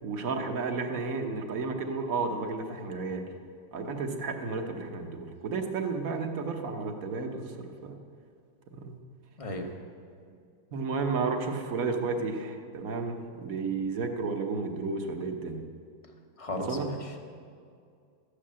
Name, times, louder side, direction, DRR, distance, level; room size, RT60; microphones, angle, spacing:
voice 1, 0.0-3.2 3.7-7.9 8.8-8.9 10.7-15.6 16.5-16.9, right 4 dB, 50° right, 4 dB, 1.4 m, -32 dB
voice 2, 9.4-9.8 16.4-17.2, left 1 dB, 25° left, 3 dB, 0.8 m, -36 dB
13.5 x 8.6 x 7.6 m, 2.3 s
omnidirectional pair, 2.1 m